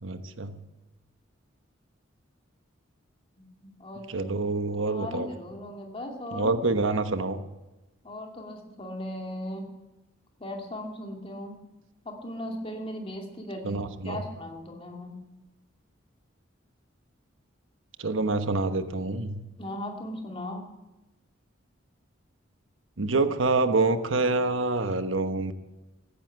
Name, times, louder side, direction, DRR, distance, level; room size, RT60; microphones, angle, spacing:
voice 1, 0.0-0.6 4.1-5.3 6.3-7.4 13.6-14.2 18.0-19.4 23.0-25.5, right 3 dB, 85° right, 9 dB, 1.2 m, -26 dB
voice 2, 3.4-4.3 4.9-6.5 8.0-9.7 10.4-11.6 12.0-15.2 19.6-20.7, left 1 dB, 30° left, 2 dB, 2.4 m, -38 dB
15.5 x 10.0 x 8.9 m, 1.1 s
head